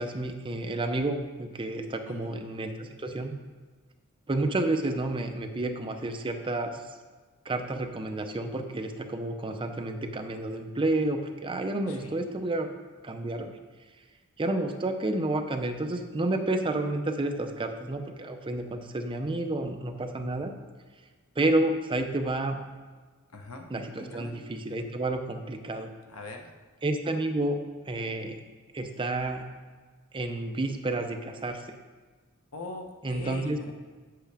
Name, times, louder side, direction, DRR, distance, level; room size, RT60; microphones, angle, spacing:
voice 1, 0.0-3.3 4.3-6.8 7.5-12.7 13.0-13.5 14.4-20.5 21.4-22.6 23.7-25.9 26.8-27.6 27.9-28.4 28.7-29.5 30.1-31.6 33.0-33.7, right 2 dB, 25° right, 5 dB, 0.6 m, -30 dB
voice 2, 2.0-2.4 11.9-12.2 23.3-23.7 24.0-24.4 26.1-26.5 32.5-33.7, left 2 dB, 75° left, 3 dB, 1.1 m, -42 dB
8.2 x 7.8 x 3.5 m, 1.4 s
head